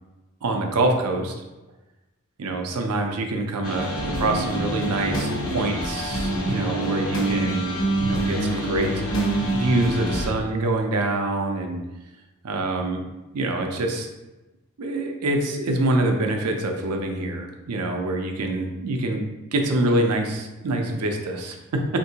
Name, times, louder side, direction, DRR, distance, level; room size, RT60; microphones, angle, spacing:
voice 1, 0.4-1.3 2.4-9.0 9.5-11.8 12.4-13.0 13.3-14.1 14.8-19.2 19.5-22.0, right 2 dB, 85° right, 3 dB, 0.5 m, -25 dB
sound 1, 3.6-10.3, right 1 dB, 65° left, 0.8 m, -26 dB
3.6 x 2.6 x 2.7 m, 1.1 s
head